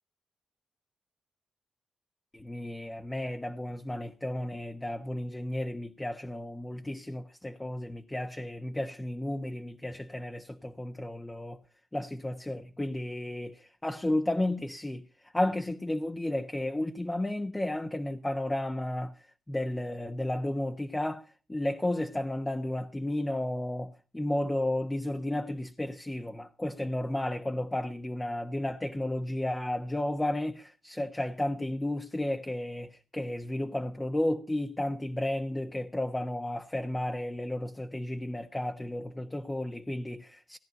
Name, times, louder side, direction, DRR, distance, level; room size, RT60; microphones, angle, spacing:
voice 1, 2.3-11.6 11.9-19.1 19.5-40.6, left 1 dB, 15° left, 1.3 m, -33 dB
18.5 x 10.5 x 5.5 m
cardioid pair, 65°, 0 cm